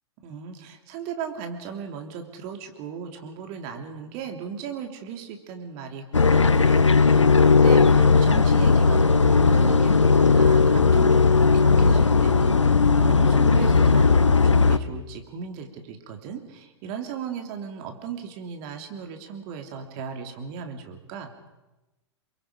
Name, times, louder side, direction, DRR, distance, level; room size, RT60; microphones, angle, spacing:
voice 1, 0.2-21.3, right 7 dB, 40° right, 5 dB, 3.2 m, -37 dB
sound 1, 6.1-14.8, left 4 dB, 85° left, 0.9 m, -17 dB
28.0 x 23.0 x 5.2 m, 1.0 s
figure-of-eight pair, 100°, 15 cm